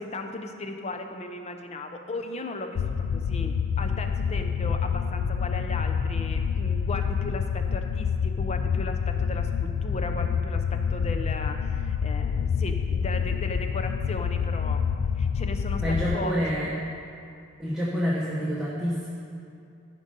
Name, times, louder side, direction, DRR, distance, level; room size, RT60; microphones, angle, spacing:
voice 1, 0.0-14.9 15.1-16.7, left 2 dB, 30° left, 5 dB, 0.5 m, -36 dB
sound 1, 2.7-16.2, left 6 dB, 80° left, 0.3 m, -27 dB
voice 2, 15.8-16.7 17.6-19.1, equal, 5° right, -8 dB, 1.0 m, -27 dB
13.0 x 5.3 x 5.2 m, 2.5 s
head